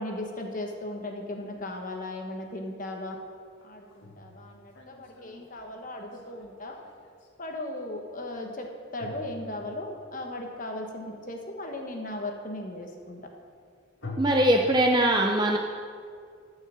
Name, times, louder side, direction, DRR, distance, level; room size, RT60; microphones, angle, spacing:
voice 1, 0.0-3.1 3.6-6.8 7.4-8.7 8.9-13.2, left 1 dB, 40° left, 2 dB, 1.2 m, -37 dB
sound 1, 3.6-7.3 9.0-10.1 14.0-14.7, left 1 dB, 70° left, 1.5 m, -43 dB
voice 2, 14.2-15.6, right 1 dB, 20° right, 1 dB, 0.6 m, -21 dB
13.0 x 5.6 x 7.4 m, 2.2 s
head